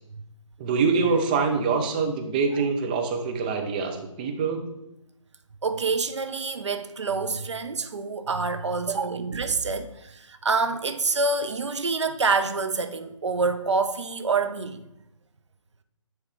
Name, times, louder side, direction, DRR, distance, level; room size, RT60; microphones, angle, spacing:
voice 1, 0.6-4.6, right 4 dB, 15° right, 0.6 m, -25 dB
voice 2, 5.6-14.8, right 4 dB, 60° right, 0.7 m, -27 dB
9.6 x 3.2 x 4.7 m
figure-of-eight pair, 145°, 17 cm